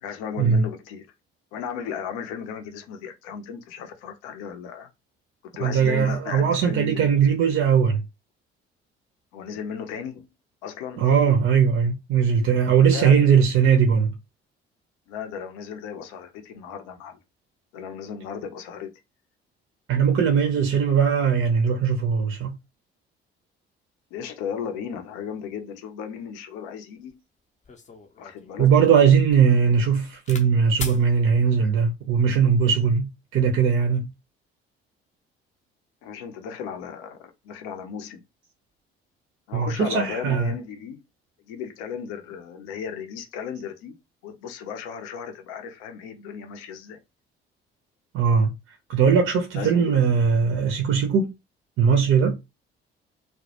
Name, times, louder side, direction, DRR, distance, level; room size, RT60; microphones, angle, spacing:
voice 1, 0.0-1.1 1.5-4.9 5.5-7.5 9.3-10.3 10.6-11.0 12.8-13.3 15.1-17.2 17.7-18.9 24.1-27.2 28.2-28.7 36.0-38.2 39.5-41.0 41.5-44.0 44.2-47.0 49.5-50.0, left 7 dB, 60° left, 0.6 m, -35 dB
voice 2, 5.6-8.0 11.0-14.1 19.9-22.6 28.6-34.1 39.5-40.5 48.1-48.5 48.9-51.3 51.8-52.4, right 6 dB, 40° right, 0.5 m, -20 dB
sound 1, 27.1-27.2 27.6-30.5 30.8-31.0 31.9-32.3, left 4 dB, 25° left, 0.6 m, -39 dB
2.2 x 2.0 x 2.8 m
figure-of-eight pair, 50°, 31 cm